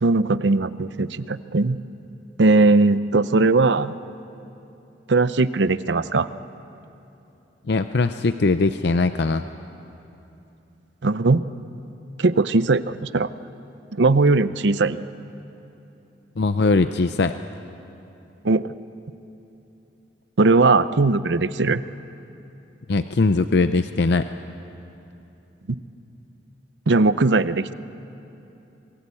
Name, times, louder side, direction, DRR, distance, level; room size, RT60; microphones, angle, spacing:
voice 1, 0.0-1.8 2.4-3.9 5.1-6.3 11.0-11.4 12.2-13.3 13.9-15.0 18.4-18.7 20.4-21.8 26.9-27.7, right 3 dB, 80° right, 14 dB, 0.7 m, -19 dB
voice 2, 7.7-9.4 16.4-17.3 22.9-24.3, left 3 dB, 65° left, 10 dB, 0.6 m, -20 dB
27.5 x 21.5 x 8.4 m, 2.9 s
head